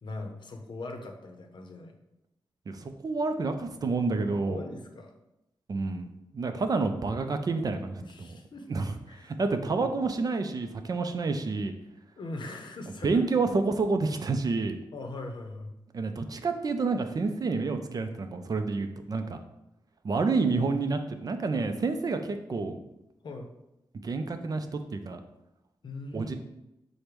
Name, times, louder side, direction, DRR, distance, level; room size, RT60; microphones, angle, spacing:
voice 1, 0.0-2.0 4.5-5.1 8.0-8.7 9.1-9.9 12.2-13.2 14.9-15.7 23.2-23.5 25.8-26.4, left 2 dB, 60° left, 4 dB, 0.6 m, -40 dB
voice 2, 2.7-4.6 5.7-6.1 6.3-8.3 8.7-11.7 13.0-14.8 15.9-19.4 20.0-22.8 24.0-25.2 26.1-26.3, right 3 dB, 45° right, 7 dB, 0.4 m, -29 dB
5.0 x 2.1 x 4.5 m, 0.89 s
wide cardioid pair, 90°, 9 cm